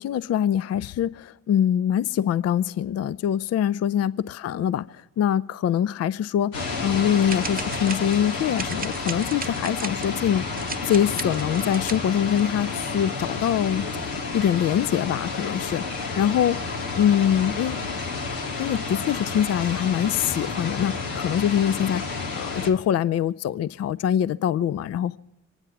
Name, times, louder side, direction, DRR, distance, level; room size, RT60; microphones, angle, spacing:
voice 1, 0.0-13.8 14.3-16.6 17.0-17.8 18.6-22.1 22.3-25.2, left 9 dB, 45° left, 0.5 m, -24 dB
sound 1, 6.5-22.7, left 4 dB, 85° left, 1.7 m, -30 dB
sound 2, 7.3-8.3 8.6-10.1 10.5-12.5, right 4 dB, 25° right, 0.9 m, -36 dB
25.0 x 9.7 x 5.8 m
hypercardioid pair, 40°, 35 cm